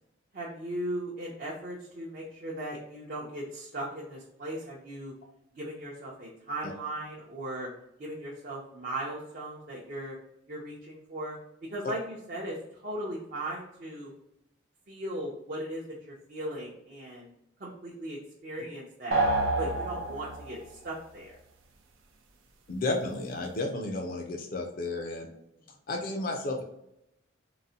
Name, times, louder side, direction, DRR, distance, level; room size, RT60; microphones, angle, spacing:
voice 1, 0.3-5.1 5.6-7.7 8.0-10.2 10.5-11.4 11.7-14.1 14.9-17.3 17.6-19.2 19.6-21.3, right 1 dB, 45° right, -4 dB, 0.6 m, -38 dB
sound 1, 19.1-20.6, right 2 dB, 85° right, 0.5 m, -28 dB
voice 2, 22.7-25.3 25.9-26.6, left 2 dB, 45° left, 2 dB, 0.4 m, -32 dB
3.8 x 2.1 x 2.7 m, 0.82 s
head